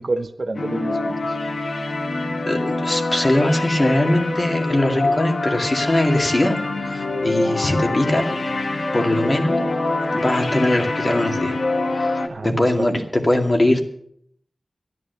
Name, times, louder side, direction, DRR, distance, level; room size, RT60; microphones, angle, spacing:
voice 1, 0.0-1.3 12.3-13.1, right 2 dB, 60° right, 7 dB, 1.1 m, -28 dB
sound 1, 0.5-12.3, left 2 dB, 85° left, 1.5 m, -25 dB
voice 2, 2.5-6.6 6.8-8.4 8.9-9.6 10.1-11.5 11.9-13.9, left 1 dB, 40° left, 2 dB, 2.3 m, -21 dB
13.0 x 11.0 x 6.8 m, 0.69 s
wide cardioid pair, 85°, 0 cm